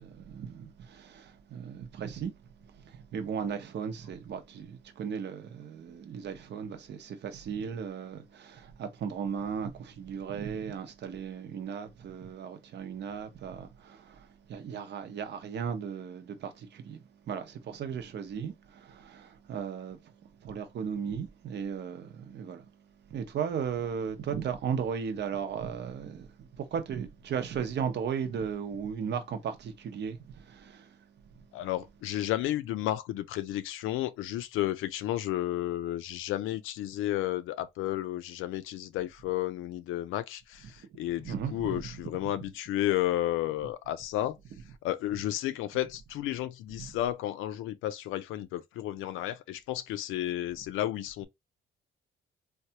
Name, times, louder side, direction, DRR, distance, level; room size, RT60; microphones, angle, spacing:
voice 1, 0.0-2.3 2.9-20.0 20.4-22.6 23.1-30.9 41.2-41.8, right 7 dB, 60° right, 0.7 m, -36 dB
voice 2, 31.5-44.4 44.8-51.3, left 14 dB, 90° left, 0.4 m, -32 dB
3.3 x 2.3 x 2.8 m
cardioid pair, 90°, 20 cm